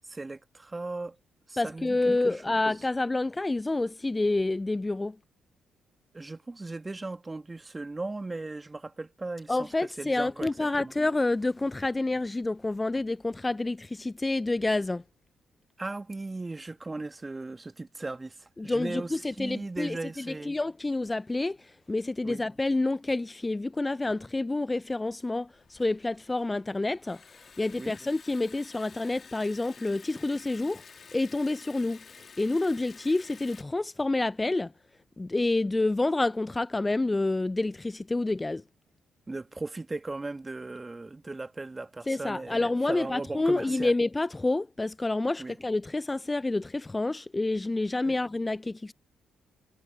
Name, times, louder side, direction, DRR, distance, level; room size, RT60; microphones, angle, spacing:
voice 1, 0.0-1.2 1.5-2.6 6.1-10.5 10.8-10.9 15.8-20.6 22.2-22.4 27.8-28.0 39.3-43.9 45.4-45.6 48.1-48.2, right 2 dB, 25° right, 2.0 m, -37 dB
voice 2, 1.6-5.2 9.5-15.0 18.6-27.2 27.6-30.8 31.1-32.0 32.4-34.7 35.2-38.6 42.1-48.9, left 2 dB, 20° left, 0.4 m, -28 dB
Liquid, 25.5-33.6, left 5 dB, 45° left, 2.9 m, -51 dB
hypercardioid pair, 40°, 0 cm